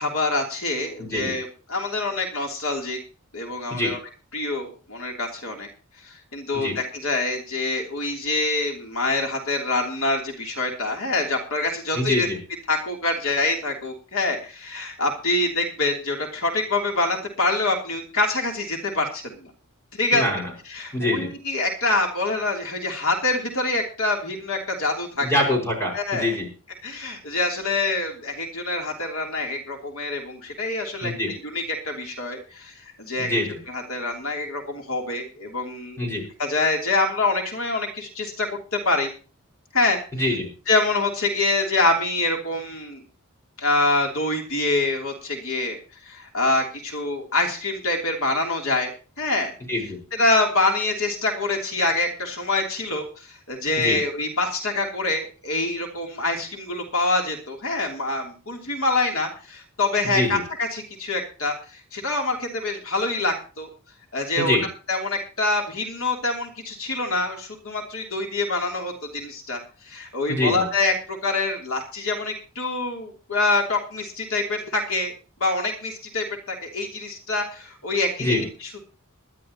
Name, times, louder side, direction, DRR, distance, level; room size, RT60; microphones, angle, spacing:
voice 1, 0.0-3.0 3.3-4.0 4.3-5.7 6.0-12.3 12.7-19.5 20.0-20.2 20.6-25.3 25.9-26.4 26.8-32.7 33.0-33.4 33.7-36.0 36.4-39.1 39.7-40.0 40.7-43.0 43.6-45.8 46.0-48.9 49.2-49.5 50.1-63.7 64.1-64.6 64.9-69.6 69.8-75.1 75.4-78.8, left 2 dB, 70° left, 1 dB, 3.2 m, -25 dB
voice 2, 1.0-1.3 3.7-3.9 6.5-6.8 11.9-12.4 20.1-20.4 20.9-21.3 25.2-26.5 31.0-31.3 33.2-33.6 36.0-36.2 40.1-40.5 49.7-50.0 53.8-54.0 60.1-60.4 64.4-64.6 70.3-70.7 78.2-78.4, left 1 dB, 10° left, 2 dB, 5.6 m, -24 dB
21.0 x 12.0 x 3.0 m, 0.35 s
head